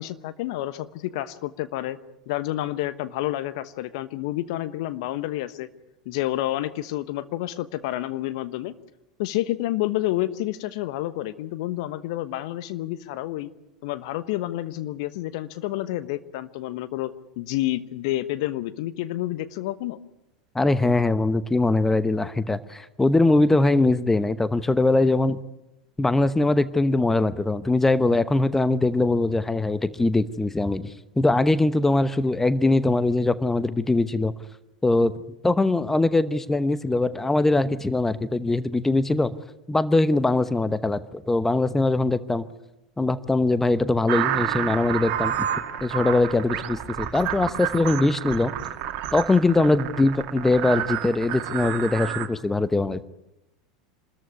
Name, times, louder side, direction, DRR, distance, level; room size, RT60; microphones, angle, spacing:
voice 1, 0.0-2.0 2.3-5.7 6.0-8.7 9.2-13.5 13.8-17.1 17.4-20.0, left 15 dB, 55° left, 13 dB, 1.1 m, -29 dB
voice 2, 20.5-25.4 26.0-34.3 34.8-35.1 35.4-39.3 39.7-42.4 43.0-45.4 45.8-48.5 49.1-53.0, left 2 dB, 10° left, 15 dB, 1.0 m, -22 dB
sound 1, 44.1-52.3, right 11 dB, 50° right, 2.3 m, -30 dB
26.0 x 14.0 x 9.7 m, 0.91 s
figure-of-eight pair, 85°, 3 cm